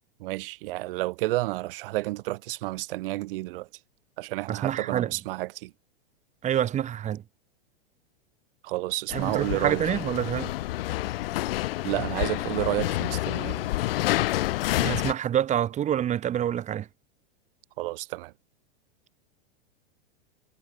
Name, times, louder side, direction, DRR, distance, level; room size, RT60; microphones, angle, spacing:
voice 1, 0.2-3.7 4.2-5.7 8.6-10.0 11.8-13.7 17.8-18.3, right 19 dB, 60° right, 5.8 m, -31 dB
voice 2, 4.5-5.1 6.4-7.2 9.1-10.5 14.7-16.9, right 10 dB, 25° right, 1.0 m, -27 dB
sound 1, 9.1-15.1, left 16 dB, 65° left, 1.2 m, -28 dB
hypercardioid pair, 115°, 31 cm